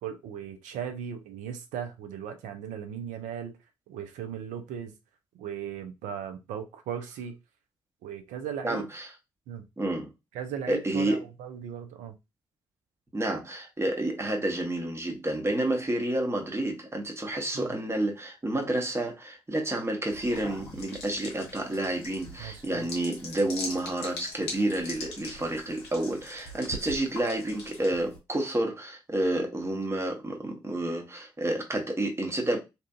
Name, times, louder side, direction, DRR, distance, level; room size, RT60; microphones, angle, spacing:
voice 1, 0.0-3.5 3.9-4.9 5.4-7.3 8.0-8.9 9.5-9.6 10.3-12.1 17.5-17.7 22.4-22.9, right 8 dB, 70° right, 0.5 m, -37 dB
voice 2, 8.6-9.1 9.8-10.1 10.7-11.2 13.1-32.6, right 1 dB, 20° right, 0.9 m, -30 dB
sound 1, 20.1-28.2, left 2 dB, 85° left, 0.7 m, -41 dB
2.7 x 2.4 x 2.3 m
hypercardioid pair, 40°, 13 cm